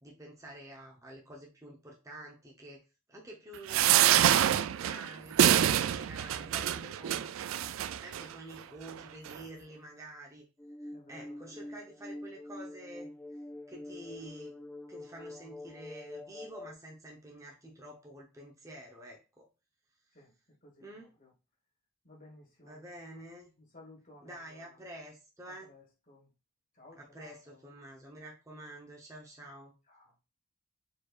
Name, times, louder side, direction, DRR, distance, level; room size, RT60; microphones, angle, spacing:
voice 1, 0.0-2.8 3.1-7.5 8.0-10.4 10.8-13.4 13.7-14.5 14.9-19.5 20.1-20.2 20.8-21.1 22.6-23.5 24.2-25.7 26.9-29.7, right 1 dB, 15° right, 0.8 m, -49 dB
sound 1, 3.7-8.2 8.9-9.0 9.3-9.4, right 11 dB, 75° right, 0.3 m, -26 dB
sound 2, 10.6-16.7, left 1 dB, 10° left, 0.3 m, -46 dB
voice 2, 10.9-11.7 20.1-20.3 20.6-20.9 21.2-21.3 22.0-22.8 23.6-24.8 25.5-26.3 26.7-27.6 29.9-30.1, left 2 dB, 40° left, 2.0 m, -57 dB
4.6 x 4.5 x 2.4 m
head